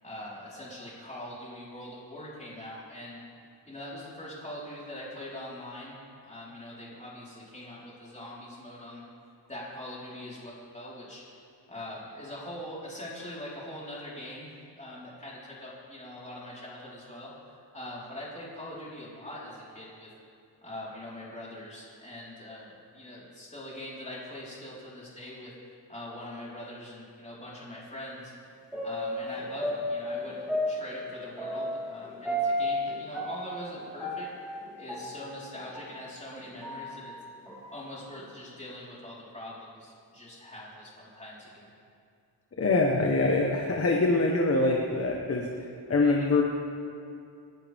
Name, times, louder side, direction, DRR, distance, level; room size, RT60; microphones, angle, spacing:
voice 1, 0.0-3.2 3.6-6.0 6.2-9.0 9.5-11.2 11.7-14.5 14.8-20.1 20.6-25.5 25.9-28.3 28.8-37.1 37.7-41.7, left 1 dB, 15° left, -7 dB, 4.4 m, -42 dB
sound 1, 28.7-36.0 36.4-37.7 38.2-38.3, equal, 5° right, 4.1 m, -33 dB
voice 2, 42.6-46.4, left 2 dB, 35° left, 0 dB, 1.3 m, -24 dB
28.5 x 11.5 x 3.6 m, 2.4 s
wide cardioid pair, 145°, 41 cm